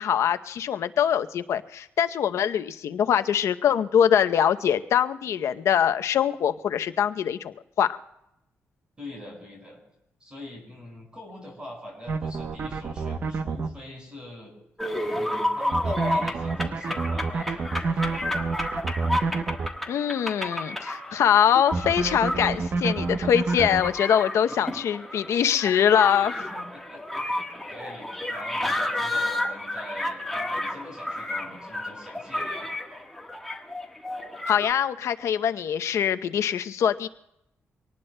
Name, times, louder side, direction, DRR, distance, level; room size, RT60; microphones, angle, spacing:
voice 1, 0.0-8.0 19.9-26.3 34.5-37.1, left 9 dB, 75° left, 10 dB, 0.7 m, -23 dB
voice 2, 9.0-9.8 10.2-14.5 15.1-18.3 26.4-32.7, left 1 dB, 20° right, 0 dB, 5.5 m, -44 dB
sound 1, 12.1-13.7 15.7-19.7 21.7-23.9, right 4 dB, 50° right, 0.8 m, -28 dB
sound 2, 14.8-34.7, left 1 dB, 5° left, 1.3 m, -31 dB
25.0 x 19.0 x 2.2 m, 0.82 s
wide cardioid pair, 140°, 5 cm